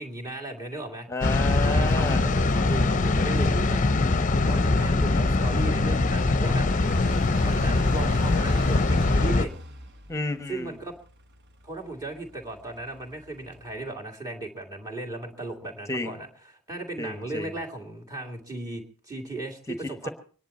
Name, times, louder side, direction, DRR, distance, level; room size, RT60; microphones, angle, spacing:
voice 1, 0.0-1.1 1.6-3.8 4.4-6.7 7.4-9.5 10.5-10.9 11.6-16.3 16.7-20.1, right 2 dB, 15° right, 2.7 m, -36 dB
voice 2, 1.1-2.2 10.1-10.8 15.9-16.2 17.0-17.6 19.7-20.1, left 2 dB, 15° left, 1.2 m, -31 dB
sound 1, 1.2-9.5, left 2 dB, 35° left, 0.7 m, -22 dB
Car passing by / Idling, 3.3-13.9, right 2 dB, 50° right, 1.1 m, -43 dB
25.0 x 10.5 x 4.3 m
head